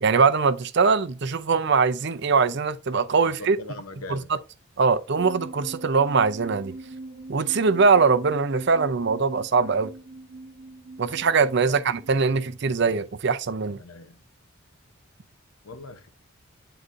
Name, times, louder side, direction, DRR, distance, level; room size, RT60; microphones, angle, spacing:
voice 1, 0.0-3.6 4.1-4.4 4.8-6.7 7.3-9.9 11.0-13.8, right 4 dB, 55° right, 0.5 m, -22 dB
voice 2, 3.3-4.3 11.6-11.8 13.8-14.2 15.6-16.1, left 2 dB, 80° left, 0.8 m, -40 dB
sound 1, 5.1-12.6, right 2 dB, 80° right, 1.2 m, -42 dB
9.7 x 3.9 x 2.5 m
head